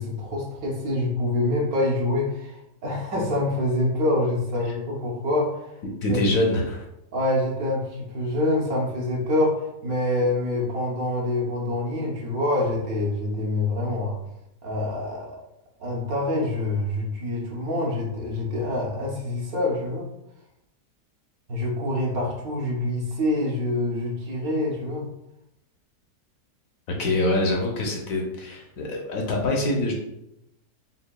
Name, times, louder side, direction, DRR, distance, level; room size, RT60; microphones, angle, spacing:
voice 1, 0.0-5.7 6.1-6.2 7.1-14.2 14.6-15.4 15.8-20.1 21.5-25.1, left 1 dB, 70° right, -2 dB, 1.3 m, -26 dB
voice 2, 6.0-6.9 27.0-29.9, left 1 dB, 70° left, 0 dB, 1.0 m, -24 dB
5.6 x 2.2 x 2.2 m, 0.84 s
omnidirectional pair, 1.7 m